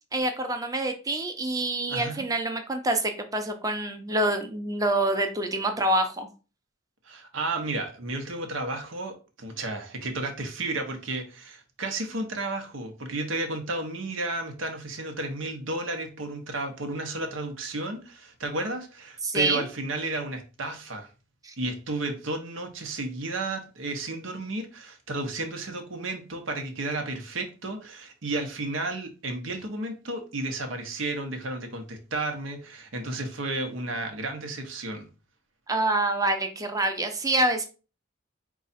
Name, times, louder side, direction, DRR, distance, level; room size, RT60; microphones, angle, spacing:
voice 1, 0.1-6.3 19.2-19.7 21.4-21.5 35.7-37.7, right 2 dB, 20° right, 0.7 m, -26 dB
voice 2, 1.9-2.3 7.0-21.1 21.6-35.1, right 2 dB, 80° right, 0.9 m, -32 dB
4.7 x 2.4 x 4.1 m
head